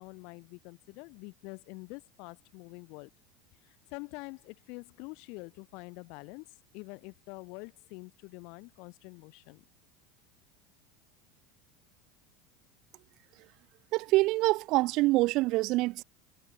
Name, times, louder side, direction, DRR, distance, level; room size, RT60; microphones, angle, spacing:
voice 1, 0.0-3.1 3.6-6.5 6.7-9.6, left 30 dB, 60° left, 1.1 m, -46 dB
voice 2, 13.9-16.0, right 20 dB, 55° right, 0.5 m, -25 dB
hypercardioid pair, 75°, 0 cm